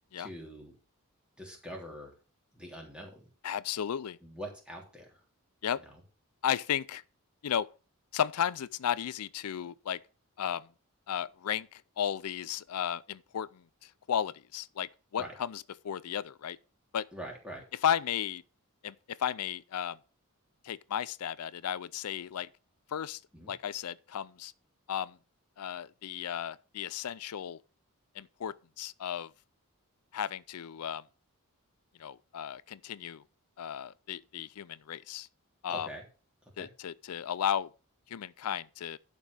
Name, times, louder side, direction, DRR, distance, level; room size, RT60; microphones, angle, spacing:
voice 1, 0.2-0.7 1.4-2.1 2.5-3.3 4.2-5.2 15.2-15.3 17.1-17.6 23.3-23.5 35.7-36.0 36.6-36.7, right 1 dB, 5° right, 3.2 m, -44 dB
voice 2, 3.4-4.2 5.6-5.8 6.4-7.0 7.4-7.7 8.1-10.0 10.4-10.7 11.1-16.6 16.9-17.1 17.8-18.4 18.8-20.0 20.6-22.5 22.9-23.2 23.5-24.5 24.9-25.2 25.6-27.6 28.2-29.3 30.1-31.0 32.0-33.2 33.6-35.3 35.6-35.9 36.6-37.7 38.1-39.0, left 9 dB, 80° left, 0.4 m, -34 dB
11.5 x 5.3 x 6.1 m
head